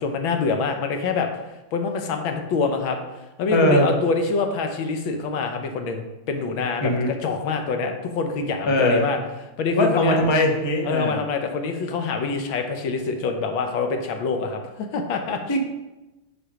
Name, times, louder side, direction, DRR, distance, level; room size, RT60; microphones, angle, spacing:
voice 1, 0.0-1.3 1.7-3.0 3.4-9.2 9.6-10.2 10.8-15.4, left 4 dB, 85° left, 5 dB, 1.7 m, -25 dB
voice 2, 3.5-3.9 6.8-7.1 8.7-9.1 9.8-11.2 15.5-15.6, left 1 dB, 25° left, 2 dB, 0.6 m, -20 dB
8.8 x 4.9 x 5.0 m, 1.0 s
omnidirectional pair, 2.1 m